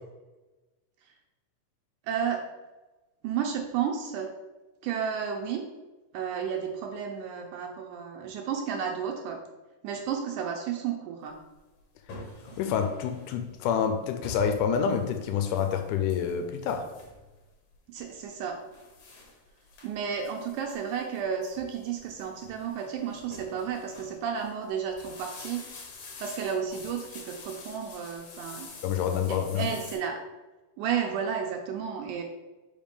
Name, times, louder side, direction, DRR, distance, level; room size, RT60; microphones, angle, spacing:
voice 1, 2.0-2.4 3.2-4.3 4.8-5.6 6.1-9.4 9.8-11.4 17.9-18.6 19.8-25.7 26.2-28.7 29.3-30.2 30.8-32.2, right 7 dB, 80° right, 2 dB, 2.0 m, -32 dB
sound 1, 11.3-30.0, left 3 dB, 60° left, 1.9 m, -47 dB
voice 2, 12.6-16.9 28.8-29.7, left 7 dB, 80° left, 6 dB, 2.1 m, -27 dB
5.1 x 3.6 x 5.2 m, 1.1 s
omnidirectional pair, 3.8 m